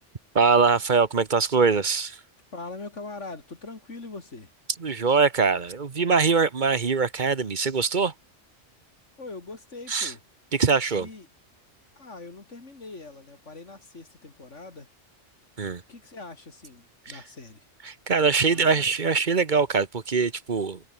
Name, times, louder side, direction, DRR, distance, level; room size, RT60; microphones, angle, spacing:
voice 1, 0.3-2.2 4.8-8.1 9.9-10.1 10.5-11.1 15.6-15.8 17.1-17.2 17.8-20.8, right 5 dB, 45° right, 1.2 m, -23 dB
voice 2, 2.5-4.5 9.2-10.2 10.9-11.3 12.0-14.9 15.9-17.7 18.5-18.8, left 3 dB, 80° left, 3.5 m, -42 dB
omnidirectional pair, 1.2 m